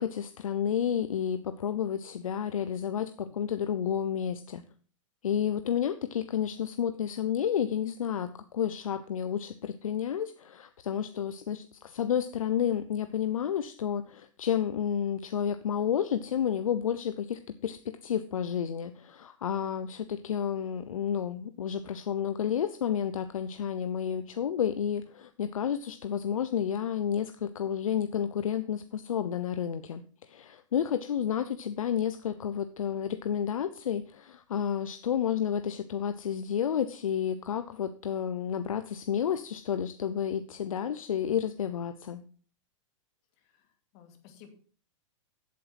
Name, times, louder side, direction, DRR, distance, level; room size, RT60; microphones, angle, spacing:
voice 1, 0.0-4.6 5.2-42.2, left 9 dB, 85° left, 11 dB, 0.7 m, -31 dB
voice 2, 43.4-44.5, left 9 dB, 45° left, 6 dB, 2.5 m, -56 dB
8.4 x 7.8 x 5.8 m, 0.42 s
hypercardioid pair, 125°, 17 cm